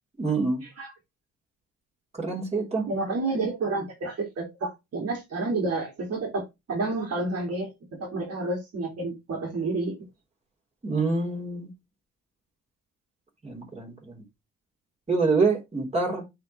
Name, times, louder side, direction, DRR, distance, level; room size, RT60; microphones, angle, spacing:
voice 1, 0.2-0.6 2.1-2.9 10.8-11.7 13.4-14.2 15.1-16.2, right 4 dB, 20° right, 3.9 m, -26 dB
voice 2, 2.9-7.7 8.0-9.9, right 3 dB, 55° right, 2.5 m, -30 dB
8.8 x 3.9 x 3.2 m
cardioid pair, 90°, 30 cm